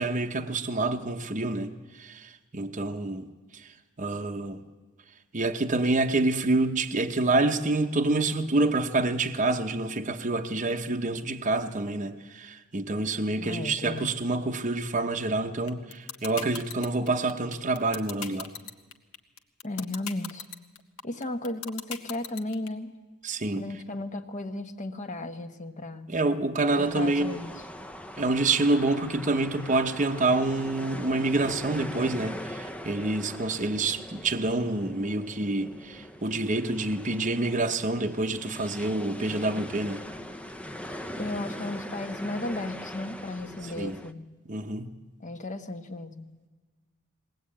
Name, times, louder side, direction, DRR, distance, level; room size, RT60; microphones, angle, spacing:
voice 1, 0.0-3.3 3.5-4.6 5.3-18.5 23.2-23.7 26.1-27.4 28.2-40.0 43.6-44.0 44.5-44.9, right 2 dB, 35° right, 0.9 m, -27 dB
voice 2, 13.4-14.1 19.6-20.4 21.0-22.9 23.6-26.1 26.8-27.5 41.2-44.3 45.2-46.3, left 2 dB, 35° left, 1.1 m, -35 dB
sound 1, 15.7-22.7, left 7 dB, 70° left, 1.4 m, -37 dB
sound 2, 26.7-44.1, equal, 5° left, 0.6 m, -41 dB
21.0 x 18.5 x 8.7 m
head